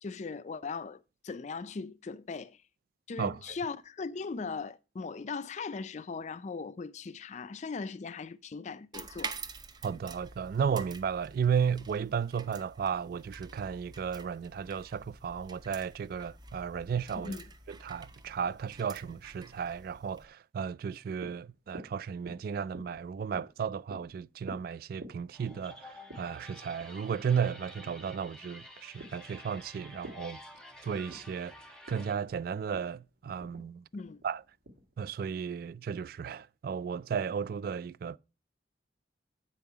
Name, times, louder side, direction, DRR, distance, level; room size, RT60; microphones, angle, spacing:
voice 1, 0.0-2.6 3.1-9.4 17.1-17.4 33.9-34.2, left 4 dB, 40° left, 0.4 m, -39 dB
sound 1, 8.9-20.3, right 4 dB, 25° right, 0.7 m, -47 dB
voice 2, 9.8-17.4 17.7-30.4 30.8-33.8 34.2-34.4 35.0-38.2, right 7 dB, 55° right, 0.3 m, -34 dB
sound 2, 20.8-35.4, right 1 dB, 85° right, 2.3 m, -52 dB
sound 3, 25.3-32.2, left 1 dB, 5° left, 1.1 m, -50 dB
8.6 x 5.5 x 4.5 m
head